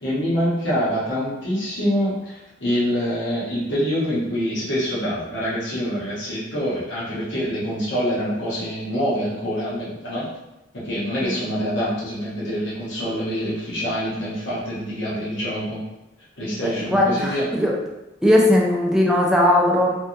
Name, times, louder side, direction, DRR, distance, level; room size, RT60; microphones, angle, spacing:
voice 1, 0.0-10.2 10.8-15.8 16.4-17.5, equal, 70° left, -9 dB, 1.2 m, -25 dB
voice 2, 16.4-17.7 18.2-19.9, left 1 dB, 5° right, -3 dB, 0.5 m, -19 dB
3.4 x 2.3 x 2.8 m, 0.96 s
head